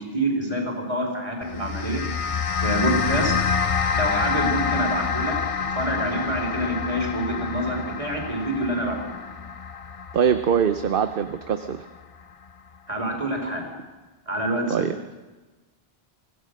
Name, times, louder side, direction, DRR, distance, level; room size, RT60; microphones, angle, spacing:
voice 1, 0.0-2.0 2.6-3.3 3.9-5.3 5.7-9.1 12.9-13.7 14.3-14.9, right 1 dB, 30° right, 0 dB, 4.5 m, -26 dB
sound 1, 1.4-12.0, left 6 dB, 40° left, 0.7 m, -27 dB
voice 2, 10.1-11.8 14.7-14.9, right 8 dB, 60° right, 10 dB, 0.9 m, -23 dB
24.0 x 16.5 x 6.5 m, 1.2 s
omnidirectional pair, 1.0 m